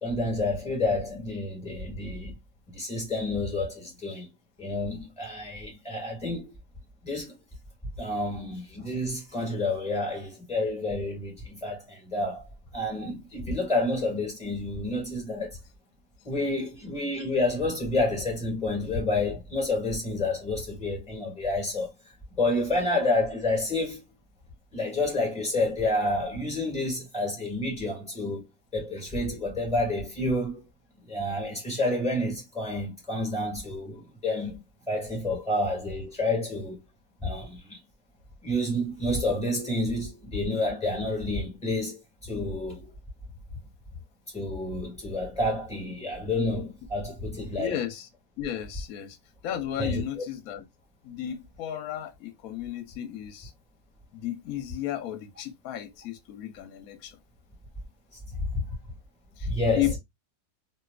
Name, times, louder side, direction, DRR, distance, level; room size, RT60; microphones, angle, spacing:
voice 1, 0.0-2.4 2.7-4.3 4.6-6.5 7.0-7.3 8.0-12.4 12.7-15.6 16.2-21.9 22.3-24.0 24.7-28.5 28.7-30.6 31.0-36.8 37.2-37.8 38.4-42.9 44.3-47.8 49.8-50.3 58.4-58.6 59.4-59.9, left 2 dB, 5° left, 2.0 m, -29 dB
voice 2, 47.6-48.1 48.4-49.2 49.4-50.6 51.0-53.5 54.1-57.2 59.4-59.5 59.7-60.0, left 12 dB, 65° left, 1.0 m, -33 dB
3.1 x 2.9 x 2.3 m
omnidirectional pair, 1.8 m